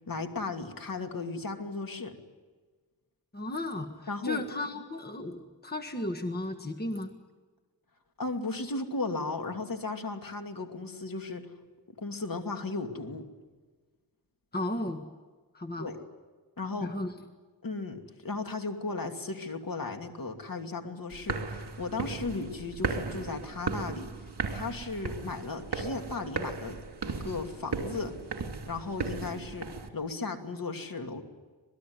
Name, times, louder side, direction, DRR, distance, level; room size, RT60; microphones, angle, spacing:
voice 1, 0.1-2.1 4.1-4.4 8.2-11.5 12.0-13.2 15.8-16.0 16.6-16.9 17.6-24.1 24.5-26.8 27.0-28.1 28.7-31.2, left 3 dB, 55° left, 5 dB, 2.7 m, -35 dB
voice 2, 3.3-7.1 14.5-15.0 15.5-15.9 16.8-17.1, left 2 dB, 25° left, 6 dB, 1.7 m, -34 dB
sound 1, 21.1-29.9, right 4 dB, 75° right, 2.9 m, -36 dB
26.5 x 20.0 x 9.6 m, 1.4 s
wide cardioid pair, 115°, 40 cm